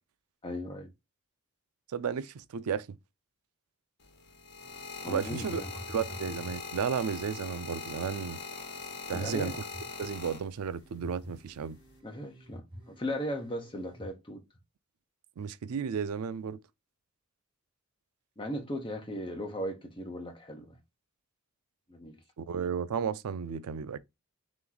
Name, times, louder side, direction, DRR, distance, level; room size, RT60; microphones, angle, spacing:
voice 1, 0.4-0.9 5.0-5.7 9.1-9.6 12.0-14.4 18.4-20.8 21.9-22.2, equal, 20° left, 0.8 m, -37 dB
voice 2, 1.9-2.9 5.1-5.6 5.9-8.4 9.1-9.6 10.0-11.8 15.4-16.6 22.4-24.0, right 7 dB, 85° right, 0.4 m, -33 dB
sound 1, 4.0-10.9 11.7-12.0, left 4 dB, 50° left, 0.9 m, -42 dB
sound 2, 4.6-14.1, equal, 20° right, 1.0 m, -50 dB
3.4 x 3.0 x 3.8 m
head